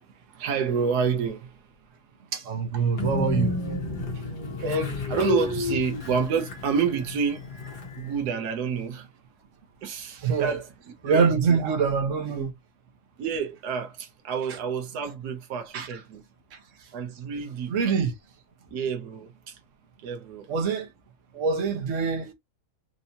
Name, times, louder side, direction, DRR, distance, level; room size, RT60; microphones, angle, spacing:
voice 1, 0.2-1.7 4.6-7.5 8.0-9.1 9.8-10.7 11.0-11.8 13.2-16.2 16.9-17.8 18.7-19.6 20.0-20.5, right 6 dB, 80° right, 1.3 m, -29 dB
voice 2, 2.3-3.6 10.2-10.5 11.0-12.5 15.7-15.9 17.7-18.1 20.5-20.9 21.3-22.3, right 5 dB, 55° right, 1.3 m, -24 dB
Train, 3.0-8.3, left 4 dB, 85° left, 1.9 m, -31 dB
4.5 x 2.8 x 2.7 m
omnidirectional pair, 1.7 m